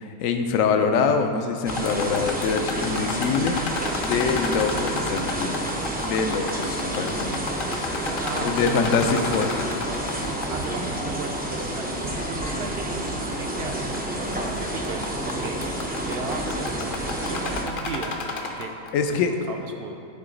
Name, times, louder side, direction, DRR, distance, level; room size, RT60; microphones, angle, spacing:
voice 1, 0.0-3.6 4.0-5.7 6.0-7.5 8.4-9.6 18.9-19.3, left 5 dB, 75° left, 6 dB, 1.0 m, -24 dB
sound 1, 1.6-10.7 10.9-11.0 11.8-11.9 12.5-12.6 13.7-14.0 14.3-14.6 14.8-18.9, left 3 dB, 50° left, 0.7 m, -32 dB
sound 2, 1.7-17.6, right 1 dB, 15° right, 0.3 m, -29 dB
voice 2, 8.2-9.0 10.5-15.6 16.0-18.7 19.1-20.0, right 4 dB, 60° right, 4 dB, 0.7 m, -36 dB
9.7 x 3.9 x 5.1 m, 2.8 s
omnidirectional pair, 1.4 m